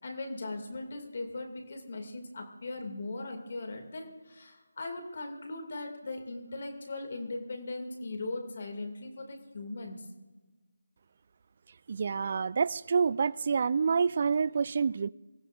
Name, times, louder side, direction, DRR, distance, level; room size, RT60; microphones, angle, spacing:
voice 1, 0.0-10.0, left 2 dB, 45° left, 4 dB, 2.4 m, -39 dB
voice 2, 11.9-15.1, right 5 dB, 40° right, 21 dB, 0.3 m, -27 dB
24.5 x 15.5 x 2.5 m, 1.2 s
figure-of-eight pair, 160°, 0 cm